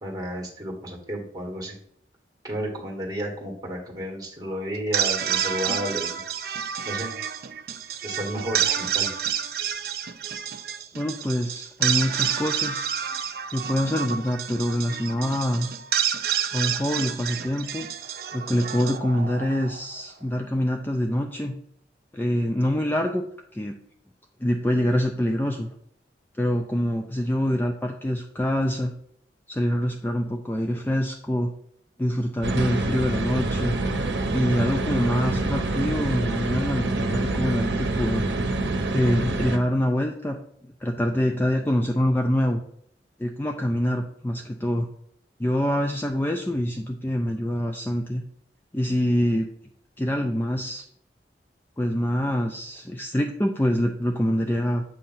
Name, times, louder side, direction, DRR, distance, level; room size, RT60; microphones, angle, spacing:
voice 1, 0.0-1.7 2.4-6.2 6.8-7.1 8.0-9.1, equal, 20° right, 0 dB, 1.5 m, -32 dB
sound 1, 4.7-20.0, right 8 dB, 55° right, 0.5 m, -29 dB
voice 2, 10.9-12.9 13.5-15.7 16.5-17.8 18.3-21.5 22.1-23.2 23.5-23.8 24.4-25.7 26.4-28.9 29.5-31.5 32.0-33.8 34.3-38.2 38.9-40.4 40.8-42.6 43.2-44.9 45.4-48.2 48.7-49.5 50.0-50.8 51.8-54.8, equal, 10° left, 3 dB, 0.4 m, -25 dB
sound 2, 32.4-39.6, right 2 dB, 85° right, 0.7 m, -26 dB
7.6 x 2.8 x 5.6 m, 0.67 s
head